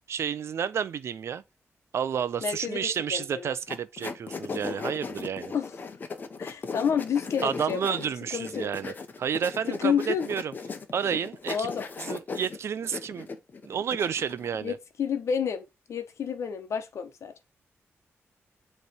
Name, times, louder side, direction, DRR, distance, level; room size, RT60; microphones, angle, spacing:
voice 1, 0.1-1.4 1.9-5.5 7.4-10.5 10.9-11.7 12.0-13.3 13.6-14.8, right 7 dB, 65° right, 0.6 m, -30 dB
voice 2, 2.4-3.5 5.5-5.7 6.4-8.0 8.3-8.7 9.7-10.3 11.5-11.9 14.5-17.3, left 7 dB, 75° left, 1.1 m, -30 dB
sound 1, 3.7-14.5, left 4 dB, 40° left, 1.1 m, -37 dB
8.2 x 3.3 x 4.4 m
wide cardioid pair, 155°, 5 cm